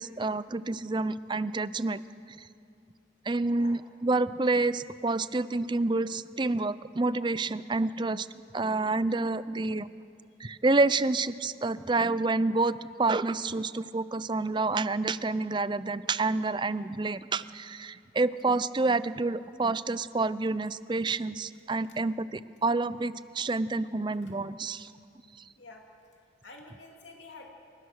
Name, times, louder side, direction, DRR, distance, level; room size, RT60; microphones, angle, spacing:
voice 1, 0.0-2.0 2.4-2.5 3.3-8.3 8.5-9.9 10.4-24.9, right 3 dB, 25° right, 16 dB, 0.5 m, -28 dB
voice 2, 26.4-27.5, left 3 dB, 75° left, 0 dB, 2.6 m, -48 dB
29.5 x 19.0 x 6.4 m, 2.5 s
head